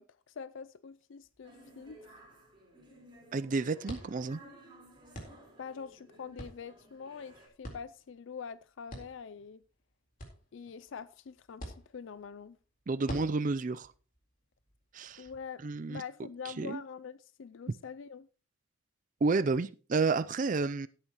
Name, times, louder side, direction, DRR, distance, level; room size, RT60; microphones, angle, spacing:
voice 1, 0.0-2.1 5.6-9.6 10.5-12.6 15.2-15.6 15.9-18.3, left 6 dB, 65° left, 0.4 m, -45 dB
sound 1, 1.2-15.4, equal, 40° left, 3.9 m, -50 dB
sound 2, 1.4-7.5, right 1 dB, 25° right, 4.2 m, -56 dB
voice 2, 3.3-4.4 12.9-13.9 14.9-15.3 15.6-16.0 16.6-16.8 19.2-20.9, right 3 dB, 40° right, 0.4 m, -30 dB
16.5 x 9.0 x 3.0 m
head